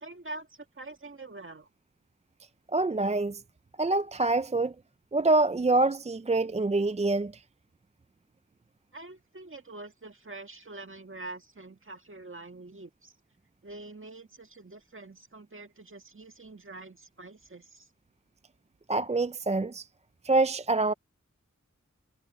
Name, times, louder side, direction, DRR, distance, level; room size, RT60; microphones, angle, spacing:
voice 1, 0.0-1.7 8.9-13.1 13.6-17.9, right 2 dB, 40° right, 1.7 m, -45 dB
voice 2, 2.7-3.4 3.8-4.7 5.1-7.4 18.9-19.9 20.2-20.9, right 2 dB, 20° right, 0.4 m, -25 dB
wide cardioid pair, 70°, 31 cm